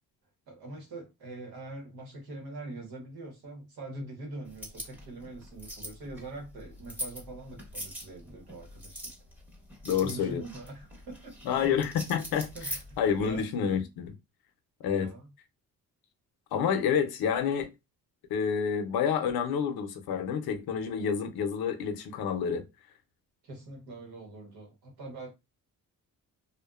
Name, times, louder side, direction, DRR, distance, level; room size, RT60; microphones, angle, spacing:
voice 1, 0.5-9.1 9.9-11.8 12.5-13.4 14.9-15.3 23.4-25.3, right 2 dB, 85° right, 1.1 m, -43 dB
sound 1, 4.5-13.4, equal, 5° right, 0.9 m, -43 dB
voice 2, 9.8-10.4 11.4-12.5 13.0-14.1 14.8-15.1 16.5-17.7 18.3-22.6, left 7 dB, 75° left, 0.6 m, -28 dB
2.5 x 2.1 x 2.3 m
cardioid pair, 90°, 37 cm